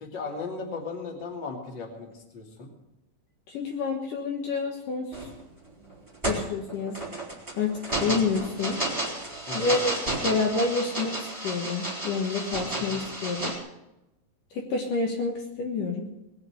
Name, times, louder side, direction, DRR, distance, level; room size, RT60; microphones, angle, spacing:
voice 1, 0.0-2.7 8.0-8.3 9.5-9.8 12.9-13.0, left 4 dB, 30° left, 1 dB, 2.9 m, -37 dB
voice 2, 3.5-5.3 6.3-7.0 7.6-8.8 9.5-13.5 14.5-16.1, left 4 dB, 65° left, 1 dB, 2.9 m, -29 dB
sound 1, 5.1-5.4 5.9-13.6, right 1 dB, 5° right, 4.0 m, -32 dB
20.5 x 7.0 x 9.6 m, 0.93 s
omnidirectional pair, 4.3 m